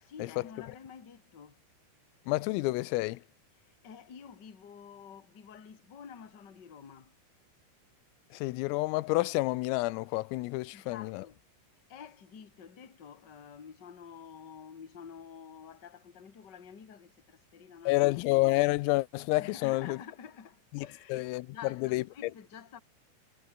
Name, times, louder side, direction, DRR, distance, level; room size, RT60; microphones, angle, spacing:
voice 1, 0.0-1.6 3.6-7.1 10.7-11.4 11.9-18.0 19.4-22.8, left 7 dB, 30° left, 2.2 m, -49 dB
voice 2, 2.3-3.2 8.3-11.2 17.9-20.0 20.7-21.6 21.8-22.3, left 21 dB, 90° left, 3.5 m, -29 dB
omnidirectional pair, 5.9 m